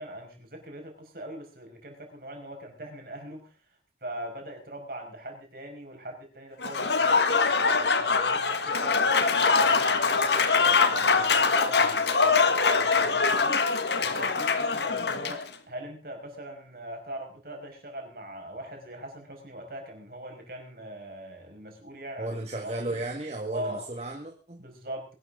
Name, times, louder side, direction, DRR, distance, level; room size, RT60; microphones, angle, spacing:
voice 1, 0.0-3.6 4.0-23.0 23.5-23.9 24.6-25.2, right 1 dB, 55° right, 2 dB, 5.5 m, -41 dB
Applause / Crowd, 6.6-15.5, left 4 dB, 75° left, 1.6 m, -23 dB
voice 2, 22.2-24.6, right 2 dB, 35° right, 2 dB, 1.8 m, -34 dB
22.0 x 12.0 x 3.8 m, 0.35 s
head